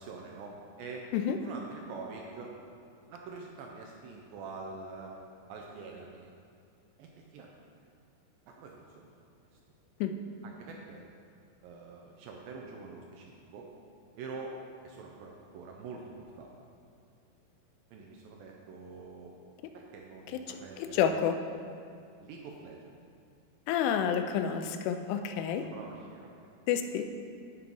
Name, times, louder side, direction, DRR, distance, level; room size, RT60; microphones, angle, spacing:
voice 1, 0.0-1.1 1.4-2.5 3.0-5.1 5.5-6.3 7.0-7.5 8.5-9.0 10.4-11.0 11.6-13.7 14.2-14.6 14.8-16.5 17.9-19.3 19.7-21.2 22.2-23.0 25.7-26.5, right 4 dB, 80° right, 0 dB, 2.1 m, -45 dB
voice 2, 20.5-21.3 23.7-25.7 26.7-27.1, left 8 dB, 85° left, 7 dB, 2.6 m, -29 dB
11.5 x 4.5 x 5.4 m, 2.3 s
omnidirectional pair, 4.8 m